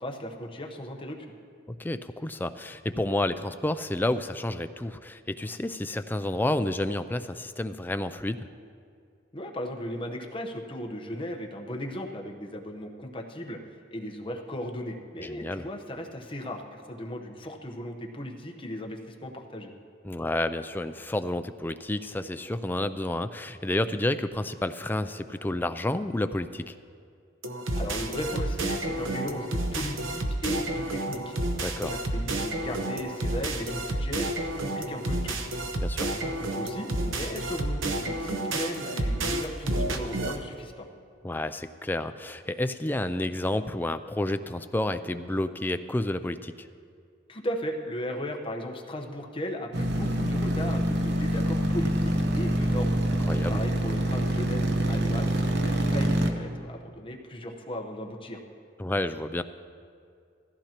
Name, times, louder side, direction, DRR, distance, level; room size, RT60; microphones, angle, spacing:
voice 1, 0.0-1.3 9.3-19.7 27.8-31.4 31.8-35.4 36.0-40.9 47.3-53.0 53.5-58.4, equal, 25° left, 2 dB, 1.0 m, -36 dB
voice 2, 1.7-8.5 15.2-15.7 20.0-26.8 31.6-31.9 35.8-36.1 41.2-46.7 53.3-53.6 58.8-59.4, left 1 dB, 10° left, 10 dB, 0.3 m, -30 dB
sound 1, 27.4-40.4, right 1 dB, 85° right, 1.0 m, -30 dB
sound 2, 49.7-56.3, equal, 55° right, 0.9 m, -26 dB
16.5 x 14.5 x 3.0 m, 2.3 s
head